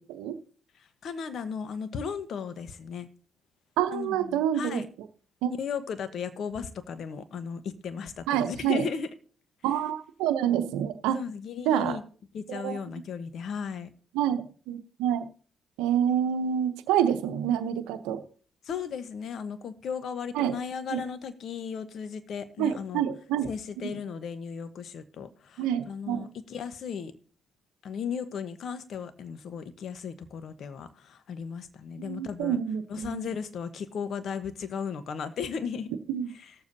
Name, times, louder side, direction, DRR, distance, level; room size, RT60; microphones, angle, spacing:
voice 1, 1.0-3.1 3.9-4.9 5.6-9.1 11.1-12.0 12.3-13.9 18.6-23.0 23.4-27.1 27.8-32.6 32.9-35.9 36.3-36.5, left 6 dB, 65° left, 1.0 m, -36 dB
voice 2, 3.8-4.8 5.4-5.5 8.3-8.8 9.6-11.2 11.7-12.0 12.5-12.8 14.1-15.2 15.8-18.2 20.3-20.5 20.9-21.0 22.6-23.5 23.8-24.0 25.6-26.3 32.0-33.3 36.1-36.3, right 9 dB, 85° right, 0.7 m, -27 dB
18.5 x 7.2 x 2.7 m
hypercardioid pair, 55°, 0 cm